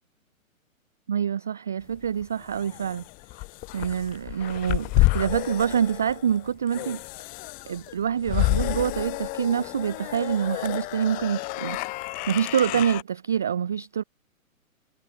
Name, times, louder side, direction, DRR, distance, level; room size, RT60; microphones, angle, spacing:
voice 1, 1.1-3.0 3.7-7.0 7.7-11.8 12.3-14.0, right 8 dB, ahead, 0.4 m, -26 dB
sound 1, 2.0-13.0, left 23 dB, 20° left, 2.2 m, -29 dB
hypercardioid pair, 150°, 42 cm